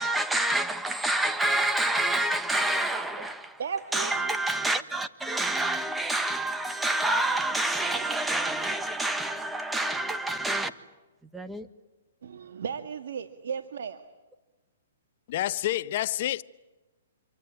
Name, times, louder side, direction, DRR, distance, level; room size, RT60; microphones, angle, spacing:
voice 1, 0.0-3.6 3.9-10.7 11.3-11.7, right 2 dB, 5° right, 1.5 m, -28 dB
voice 2, 3.6-4.2 12.2-14.0, right 6 dB, 70° right, 1.8 m, -35 dB
voice 3, 15.3-16.4, left 13 dB, 50° left, 0.9 m, -28 dB
27.5 x 23.5 x 8.9 m
hypercardioid pair, 145°, 0 cm